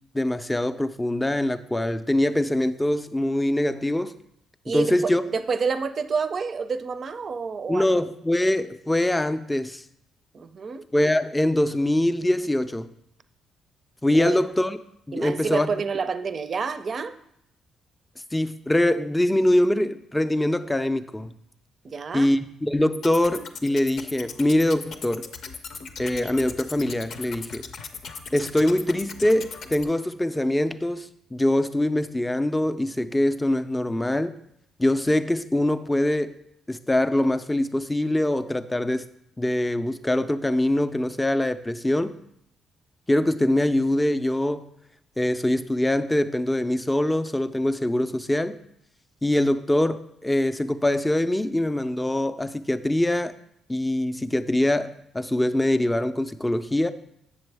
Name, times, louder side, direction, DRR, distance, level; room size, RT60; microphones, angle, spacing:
voice 1, 0.1-4.1 4.7-5.2 7.7-9.8 10.9-12.9 14.0-14.8 15.1-15.7 18.3-21.3 22.1-25.3 26.0-27.6 28.3-34.3 34.8-36.3 36.7-39.0 39.4-42.1 43.1-44.7 45.2-48.6 49.2-53.3 53.7-56.9, left 1 dB, 10° left, 11 dB, 0.4 m, -23 dB
voice 2, 4.6-7.9 10.3-10.8 14.1-14.4 15.1-17.1 21.8-22.3, right 5 dB, 45° right, 11 dB, 0.5 m, -28 dB
sound 1, 22.9-29.8, left 5 dB, 65° left, 0.6 m, -39 dB
7.6 x 7.0 x 3.4 m, 0.75 s
cardioid pair, 90°, 0 cm